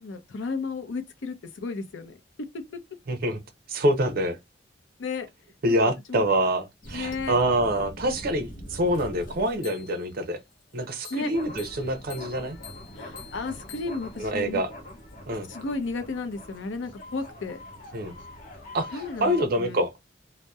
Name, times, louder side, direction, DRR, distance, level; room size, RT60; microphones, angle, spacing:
voice 1, 0.0-2.5 5.0-5.3 6.1-6.3 6.9-7.4 11.1-11.3 12.9-14.6 15.5-17.6 18.9-19.8, left 4 dB, 85° left, 0.6 m, -33 dB
voice 2, 3.1-3.4 3.7-4.4 5.6-10.4 10.7-12.6 14.2-14.7 15.3-15.5 17.9-18.1 18.7-19.9, right 1 dB, 55° right, 0.6 m, -26 dB
sound 1, 6.8-10.2 11.0-19.5, left 1 dB, 45° left, 0.7 m, -43 dB
2.7 x 2.1 x 2.3 m
head